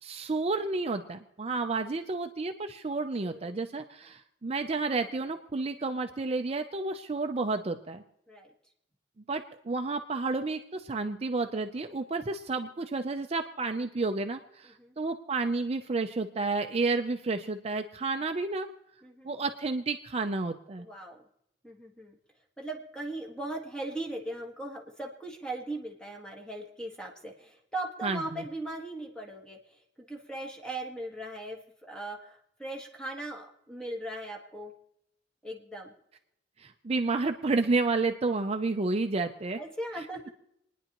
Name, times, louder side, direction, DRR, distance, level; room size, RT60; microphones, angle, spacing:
voice 1, 0.0-8.0 9.3-18.7 19.2-20.9 28.0-28.4 36.6-39.6 40.0-40.1, right 3 dB, 35° right, 6 dB, 0.5 m, -31 dB
voice 2, 3.2-3.6 8.3-8.5 14.8-14.9 19.0-19.4 20.8-21.2 21.6-22.2 22.6-29.8 30.1-34.7 35.4-35.9 39.6-40.3, right 1 dB, 5° left, 0 dB, 1.6 m, -39 dB
28.5 x 10.0 x 3.0 m, 0.81 s
head